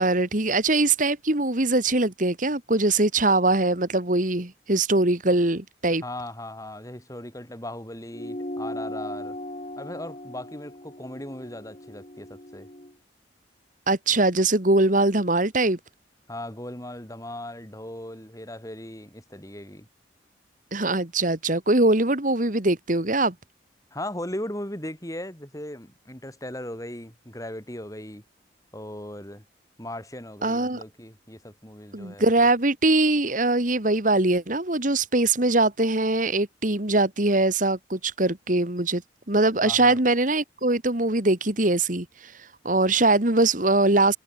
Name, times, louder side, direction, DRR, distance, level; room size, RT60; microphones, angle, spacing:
voice 1, 0.0-6.0 13.9-15.8 20.7-23.3 30.4-30.8 31.9-39.0 39.3-42.3 42.6-44.2, right 2 dB, 45° right, 2.3 m, -22 dB
voice 2, 6.0-9.4 9.8-12.7 16.3-19.9 23.9-28.2 28.7-29.4 29.8-32.5 39.6-40.0, left 1 dB, 20° left, 5.2 m, -38 dB
sound 1, 8.1-12.9, left 1 dB, 35° left, 3.4 m, -38 dB
head